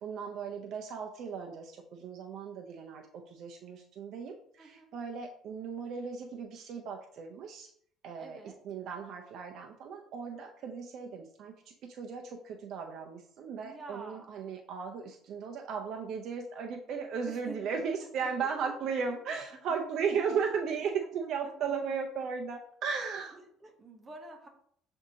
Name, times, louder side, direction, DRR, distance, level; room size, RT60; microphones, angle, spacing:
voice 1, 0.0-7.7 8.0-8.4 8.7-11.5 11.8-23.3, right 6 dB, 55° right, 2 dB, 0.5 m, -36 dB
voice 2, 4.6-4.9 8.2-8.6 13.6-14.3 17.3-17.7 18.0-19.1 19.7-20.0 21.0-21.5 21.9-22.0 23.3-24.5, right 2 dB, 20° right, 2 dB, 0.8 m, -49 dB
7.1 x 2.6 x 2.7 m, 0.64 s
cardioid pair, 140°, 0 cm